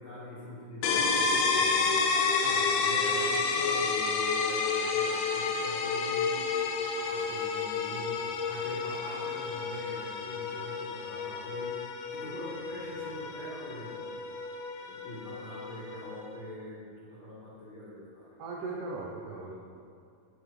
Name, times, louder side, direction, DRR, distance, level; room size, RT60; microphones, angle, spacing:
voice 1, 0.0-2.0 2.5-6.5 6.9-11.7 12.1-14.3 14.9-18.3, left 1 dB, 55° left, -9 dB, 1.4 m, -43 dB
sound 1, 0.8-16.4, left 4 dB, 85° left, 2.6 m, -30 dB
voice 2, 18.4-19.5, right 3 dB, 80° right, -3 dB, 1.8 m, -38 dB
13.0 x 6.1 x 3.2 m, 2.4 s
omnidirectional pair, 4.5 m